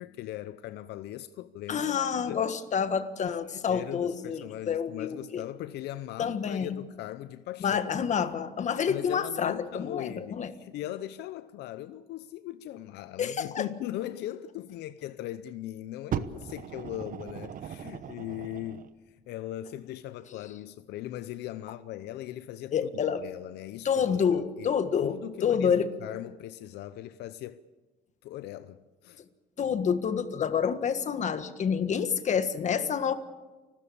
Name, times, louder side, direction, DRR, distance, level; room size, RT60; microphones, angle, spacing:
voice 1, 0.0-2.0 2.3-2.5 3.2-7.9 8.9-24.7 25.0-27.6 28.2-29.2, left 13 dB, 80° left, 0.7 m, -39 dB
voice 2, 1.7-5.4 6.2-6.8 7.6-10.5 13.2-13.7 22.7-23.3 23.9-25.9 29.6-33.1, left 7 dB, 45° left, 1.6 m, -28 dB
Fire, 16.1-18.9 19.7-19.8, right 8 dB, 55° right, 1.1 m, -37 dB
29.0 x 13.0 x 8.5 m
cardioid pair, 110°, 17 cm